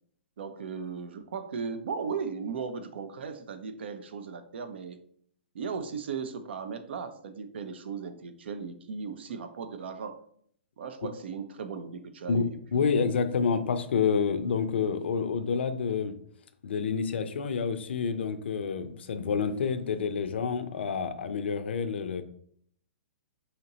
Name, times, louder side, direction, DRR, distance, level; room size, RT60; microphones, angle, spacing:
voice 1, 0.4-5.0 5.5-10.2 10.8-13.1, right 5 dB, 70° right, 10 dB, 0.5 m, -37 dB
voice 2, 12.3-16.1 16.6-22.2, left 6 dB, 75° left, 10 dB, 0.5 m, -28 dB
5.0 x 2.8 x 2.9 m, 0.64 s
hypercardioid pair, 130°, 6 cm